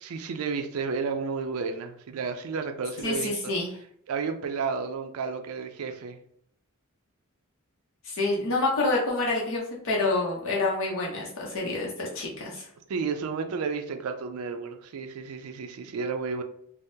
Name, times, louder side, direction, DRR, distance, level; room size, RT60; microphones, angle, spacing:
voice 1, 0.0-3.5 4.1-6.2 12.9-16.4, right 5 dB, 70° right, 6 dB, 0.4 m, -32 dB
voice 2, 3.0-3.7 8.0-12.7, left 2 dB, 65° left, -2 dB, 0.7 m, -27 dB
3.5 x 2.0 x 2.6 m, 0.66 s
head